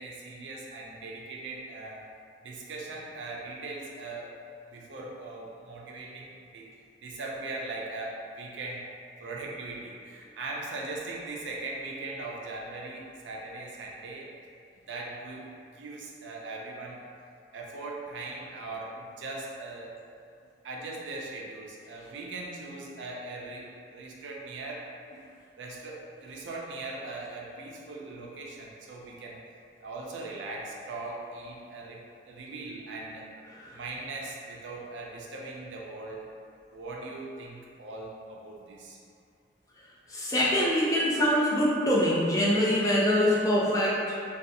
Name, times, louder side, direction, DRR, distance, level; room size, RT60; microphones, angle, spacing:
voice 1, 0.0-2.1 2.4-4.3 4.7-6.7 7.0-8.9 9.2-14.3 14.9-15.5 15.8-17.0 17.5-19.9 20.6-25.3 25.6-29.4 29.8-32.0 32.3-33.3 33.7-36.2 36.7-39.0, right 2 dB, 85° right, -3 dB, 0.4 m, -40 dB
voice 2, 40.1-44.0, equal, 20° left, -6 dB, 0.3 m, -24 dB
2.5 x 2.3 x 2.6 m, 2.4 s
head